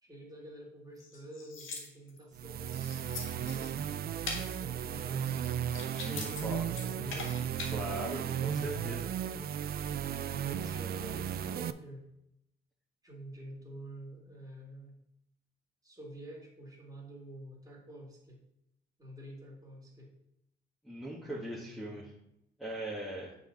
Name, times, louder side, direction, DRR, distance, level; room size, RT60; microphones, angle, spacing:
voice 1, 0.0-2.9 3.3-5.4 6.1-7.4 10.2-12.0 13.0-15.0 15.8-18.4 19.0-20.1 21.2-22.1, right 1 dB, 20° right, -2 dB, 2.6 m, -48 dB
sound 1, 1.0-2.2 2.7-3.8 4.2-4.5 5.2-6.4 6.7-7.7, left 4 dB, 80° left, 1.6 m, -42 dB
sound 2, 2.3-11.7, right 9 dB, 50° right, 0.4 m, -35 dB
voice 2, 5.9-6.6 7.7-9.2 20.8-22.1 22.6-23.4, right 1 dB, ahead, -7 dB, 1.7 m, -40 dB
6.7 x 4.2 x 5.4 m, 0.80 s
cardioid pair, 90°, 20 cm